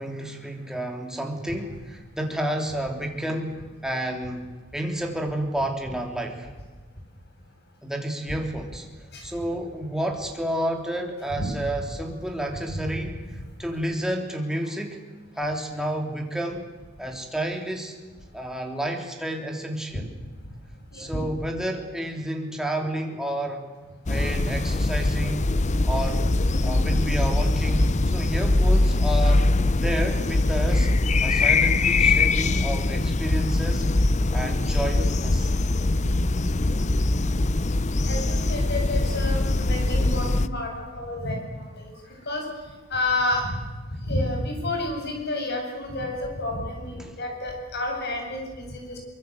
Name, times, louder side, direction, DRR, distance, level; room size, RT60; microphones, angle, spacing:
voice 1, 0.0-3.6 3.8-4.4 4.7-6.5 7.8-8.8 9.2-13.2 13.6-15.0 15.3-16.6 17.0-17.9 18.3-20.1 20.9-23.6 24.1-25.5 25.8-26.2 26.6-29.5 29.8-30.9 31.2-33.8 34.3-35.5 47.0-47.1, right 1 dB, 5° right, 2 dB, 3.4 m, -30 dB
sound 1, 24.1-40.5, left 2 dB, 35° left, 0.7 m, -22 dB
voice 2, 36.6-37.0 38.0-43.6 43.9-49.0, left 2 dB, 55° left, 2 dB, 7.9 m, -30 dB
24.0 x 23.5 x 8.2 m, 1.3 s
head